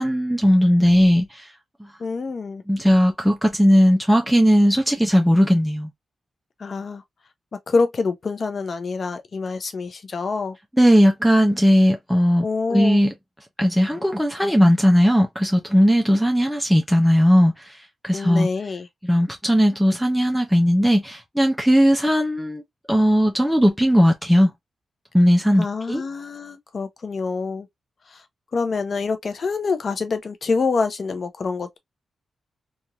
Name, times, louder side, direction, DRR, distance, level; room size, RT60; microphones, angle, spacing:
voice 1, 0.0-1.5 2.7-5.9 10.8-13.1 13.6-18.5 19.0-22.6 22.9-24.5 25.1-26.0, equal, ahead, 0.7 m, -18 dB
voice 2, 2.0-2.6 6.6-7.0 7.5-10.6 12.4-13.0 18.1-18.9 25.6-27.7 28.1-28.2 28.5-31.8, left 4 dB, 55° left, 0.7 m, -26 dB
3.0 x 2.6 x 2.3 m
cardioid pair, 60°, 0 cm